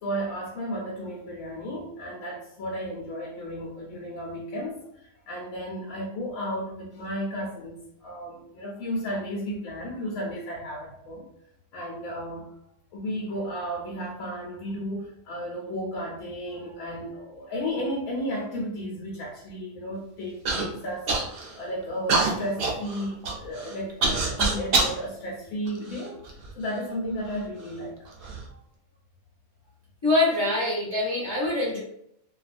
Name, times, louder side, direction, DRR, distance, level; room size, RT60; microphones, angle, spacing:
voice 1, 0.0-4.8 5.3-11.3 11.7-12.5 12.9-26.2 26.6-27.9 28.5-28.6, equal, 85° left, -5 dB, 1.1 m, -33 dB
Human voice / Cough, 20.5-20.6 21.1-21.6 22.1-25.0 25.7-26.5 27.3-27.4 28.1-28.4, right 3 dB, 60° right, 0.6 m, -26 dB
voice 2, 30.0-31.8, left 2 dB, 35° left, -6 dB, 0.4 m, -24 dB
2.5 x 2.3 x 2.4 m, 0.73 s
omnidirectional pair, 1.4 m